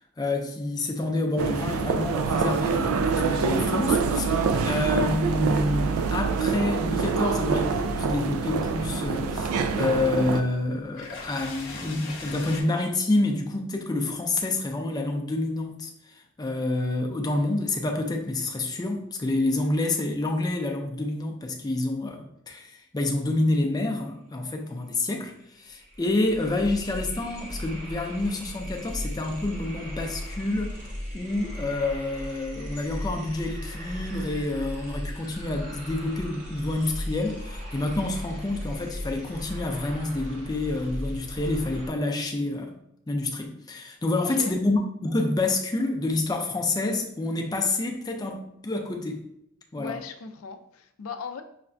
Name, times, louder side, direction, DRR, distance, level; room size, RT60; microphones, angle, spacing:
voice 1, 0.2-25.3 25.6-30.8 31.1-42.7 43.1-49.2 49.7-50.0, left 2 dB, 20° left, 3 dB, 0.4 m, -28 dB
sound 1, 1.4-10.4, right 5 dB, 85° right, 0.3 m, -25 dB
sound 2, 9.8-12.6, left 3 dB, 60° left, 0.8 m, -41 dB
sound 3, 24.9-25.0 25.2-41.9, equal, 40° right, 0.9 m, -37 dB
voice 2, 49.8-51.4, left 6 dB, 80° left, 7 dB, 0.4 m, -38 dB
5.7 x 2.1 x 2.5 m, 0.77 s
head